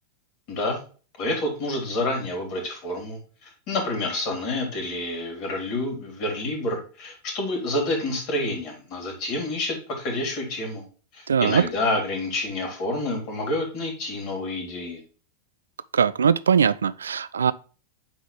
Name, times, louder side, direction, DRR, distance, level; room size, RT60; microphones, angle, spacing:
voice 1, 0.5-0.8 1.2-10.8 11.1-15.0, left 2 dB, 40° left, 3.4 m, -28 dB
voice 2, 11.3-11.7 15.9-17.5, right 7 dB, 70° right, 0.3 m, -21 dB
9.0 x 4.0 x 3.3 m
figure-of-eight pair, 90°, 0 cm